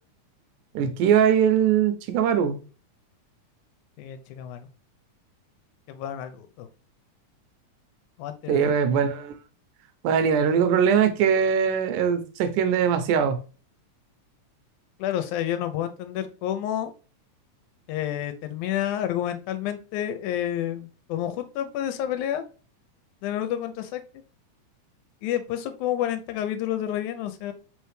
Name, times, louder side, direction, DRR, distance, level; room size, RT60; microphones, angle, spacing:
voice 1, 0.8-2.6 8.5-9.3 10.0-13.4, right 7 dB, 85° right, 2.2 m, -21 dB
voice 2, 4.0-4.6 5.9-6.7 8.2-8.7 15.0-16.9 17.9-22.4 23.2-24.0 25.2-27.5, left 11 dB, 80° left, 2.0 m, -29 dB
4.9 x 3.3 x 3.2 m
omnidirectional pair, 3.5 m